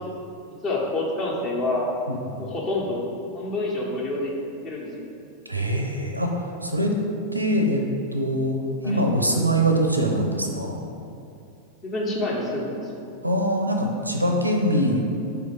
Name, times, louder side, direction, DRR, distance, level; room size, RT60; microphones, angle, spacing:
voice 1, 0.6-1.9 2.4-3.1 3.3-4.3 4.6-5.1 8.8-9.0 11.8-12.9, left 2 dB, 35° left, -2 dB, 1.2 m, -27 dB
voice 2, 5.5-6.9 7.3-7.8 8.1-8.6 8.8-10.8 13.2-15.0, right 1 dB, 85° right, 2 dB, 0.6 m, -23 dB
4.8 x 4.7 x 5.1 m, 2.6 s
figure-of-eight pair, 90°, 0 cm